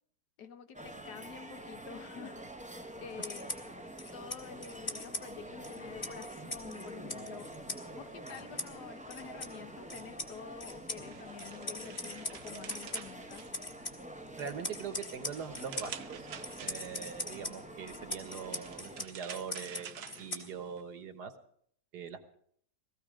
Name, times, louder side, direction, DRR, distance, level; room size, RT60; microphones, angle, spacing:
voice 1, 0.4-3.5 4.1-7.5 7.9-13.5, left 7 dB, 80° left, 9 dB, 1.6 m, -48 dB
sound 1, 0.7-19.0, right 1 dB, 10° right, 0.4 m, -47 dB
sound 2, 3.1-20.9, left 1 dB, 35° left, 2.1 m, -43 dB
sound 3, 10.7-14.1 14.5-17.2 18.1-20.8, right 8 dB, 55° right, 0.8 m, -49 dB
voice 2, 14.4-16.3 16.6-21.3 21.9-22.3, right 6 dB, 75° right, 8 dB, 1.8 m, -42 dB
18.0 x 15.0 x 5.0 m, 0.64 s
omnidirectional pair, 1.8 m